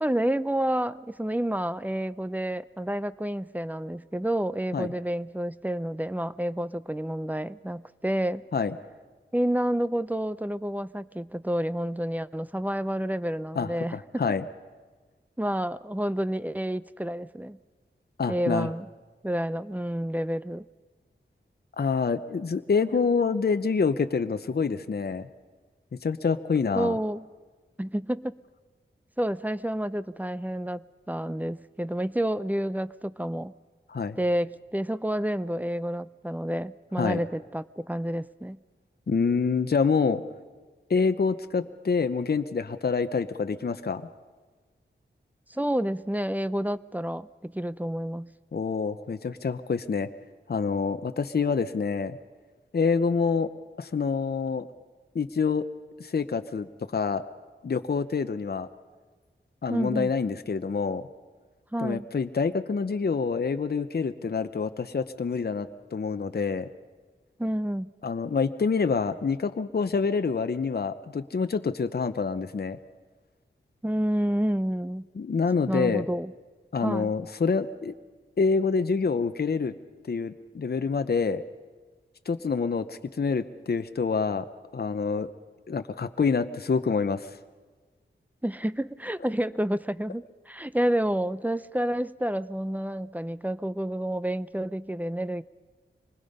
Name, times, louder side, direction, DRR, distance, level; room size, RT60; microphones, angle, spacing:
voice 1, 0.0-8.5 9.3-14.2 15.4-17.6 18.3-18.9 19.2-20.6 22.8-23.0 26.7-27.3 27.8-28.4 29.2-33.5 34.2-38.6 45.5-48.3 59.7-60.1 61.7-62.1 67.4-67.9 73.8-75.0 75.7-76.3 76.8-77.1 88.4-95.4, right 1 dB, 10° right, 16 dB, 0.6 m, -29 dB
voice 2, 13.5-14.4 18.2-18.7 21.8-25.3 25.9-27.0 33.9-34.2 37.0-37.2 39.1-40.2 40.9-44.1 48.5-50.1 50.5-52.2 52.7-53.5 53.8-54.7 55.1-55.6 56.0-56.7 56.9-57.2 57.6-58.7 59.6-61.0 61.8-66.7 68.0-72.8 75.2-76.0 76.7-77.9 78.4-79.7 80.1-81.4 82.3-84.5 84.7-85.3 85.7-87.3, left 5 dB, 50° left, 9 dB, 0.8 m, -27 dB
25.5 x 20.0 x 5.4 m, 1.4 s
wide cardioid pair, 55°, 20 cm